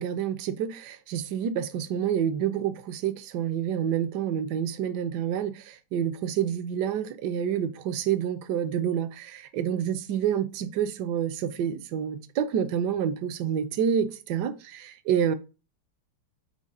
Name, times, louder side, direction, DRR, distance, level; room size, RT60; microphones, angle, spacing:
voice 1, 0.0-15.3, right 9 dB, 70° right, 1.0 m, -28 dB
4.9 x 4.6 x 5.3 m
omnidirectional pair, 2.4 m